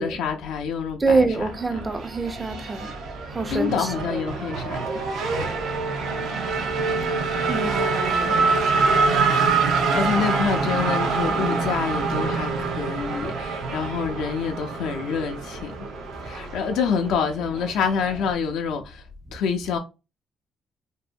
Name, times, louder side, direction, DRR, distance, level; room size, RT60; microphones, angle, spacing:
voice 1, 0.0-1.8 3.5-5.0 9.7-15.7 16.2-19.0 19.3-19.8, left 6 dB, 90° left, 0.4 m, -27 dB
voice 2, 1.0-3.0 3.3-4.2 7.5-8.6 19.3-19.4, right 3 dB, 25° right, 0.4 m, -26 dB
Race car auto racing / Accelerating revving vroom, 1.3-18.3, right 4 dB, 80° right, 0.5 m, -25 dB
2.6 x 2.1 x 2.4 m
cardioid pair, 90°, 0 cm